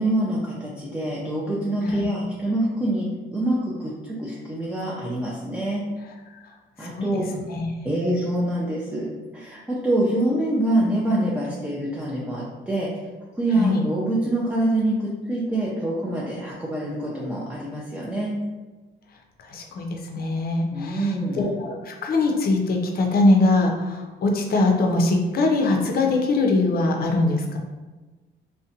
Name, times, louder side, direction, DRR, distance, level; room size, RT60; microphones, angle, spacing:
voice 1, 0.0-5.8 6.8-7.3 7.8-12.9 13.4-18.3 20.7-21.4, right 1 dB, 5° right, -5 dB, 0.4 m, -25 dB
voice 2, 6.8-7.7 13.5-13.8 19.4-27.6, left 2 dB, 50° left, 2 dB, 0.5 m, -22 dB
2.5 x 2.1 x 2.6 m, 1.2 s
cardioid pair, 90°, 20 cm